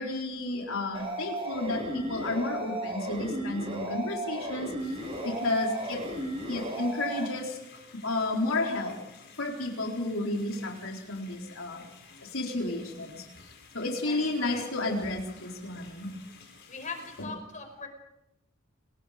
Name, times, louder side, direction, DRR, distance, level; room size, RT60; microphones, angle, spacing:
voice 1, 0.0-4.7 5.2-6.0 6.5-7.6 8.0-8.9 9.4-11.8 12.3-13.2 13.7-16.1 17.2-17.3, left 2 dB, 80° left, 0 dB, 4.0 m, -31 dB
sound 1, 0.9-7.3, right 1 dB, 30° right, 6.0 m, -35 dB
sound 2, 4.8-17.2, left 5 dB, 55° left, 7.4 m, -54 dB
voice 2, 14.0-14.6 16.7-17.9, left 4 dB, 40° left, 6 dB, 5.2 m, -40 dB
29.0 x 22.0 x 5.1 m, 0.89 s
head